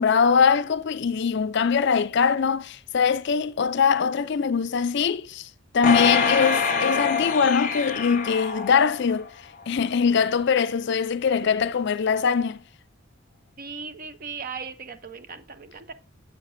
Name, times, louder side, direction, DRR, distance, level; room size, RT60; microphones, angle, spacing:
voice 1, 0.0-5.5 5.7-9.3 9.7-12.6, left 6 dB, 55° left, 0.4 m, -22 dB
sound 1, 5.8-9.3 9.8-9.9, left 5 dB, 40° left, 0.9 m, -25 dB
voice 2, 13.6-15.9, right 5 dB, 45° right, 0.7 m, -38 dB
8.0 x 6.8 x 2.6 m
head